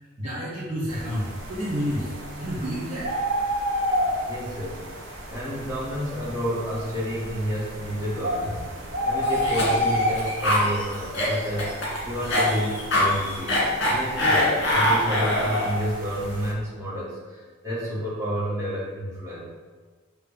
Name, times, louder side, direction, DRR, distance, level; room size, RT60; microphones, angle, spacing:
voice 1, 0.2-3.2, equal, 35° right, -9 dB, 1.3 m, -30 dB
sound 1, 0.9-16.5, equal, 70° right, 1.2 m, -31 dB
voice 2, 4.3-4.8 5.3-8.7 9.0-19.4, equal, 15° right, -8 dB, 2.0 m, -30 dB
Cough, 9.2-15.8, left 1 dB, 60° left, 1.9 m, -24 dB
6.9 x 3.1 x 5.2 m, 1.4 s
head